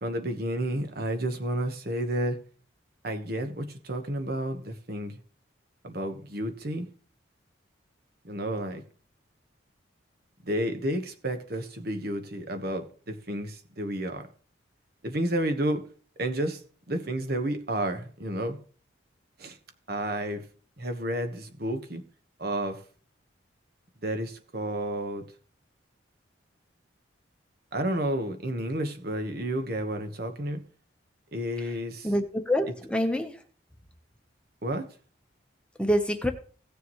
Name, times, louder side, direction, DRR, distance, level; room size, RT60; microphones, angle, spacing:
voice 1, 0.0-2.4 3.0-5.1 5.8-6.9 8.2-8.8 10.4-14.3 15.0-15.8 16.2-16.6 16.9-18.6 19.4-19.6 19.9-20.4 20.8-22.0 22.4-22.8 24.0-25.2 27.7-30.6 31.3-32.1 34.6-34.9, right 1 dB, 50° right, 1.3 m, -31 dB
voice 2, 32.0-33.4 35.8-36.3, equal, 5° left, 1.0 m, -26 dB
17.0 x 6.8 x 3.1 m
head